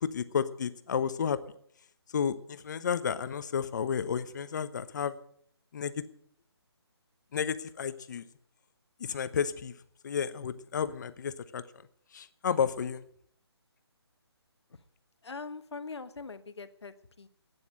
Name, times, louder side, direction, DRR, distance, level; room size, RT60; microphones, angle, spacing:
voice 1, 0.0-1.4 2.1-5.1 5.7-6.0 7.3-8.3 9.0-9.7 10.0-11.6 12.1-13.0, left 7 dB, 45° left, 13 dB, 1.0 m, -32 dB
voice 2, 15.2-17.3, left 4 dB, 75° left, 12 dB, 1.4 m, -42 dB
13.5 x 9.8 x 8.9 m, 0.66 s
hypercardioid pair, 160°, 14 cm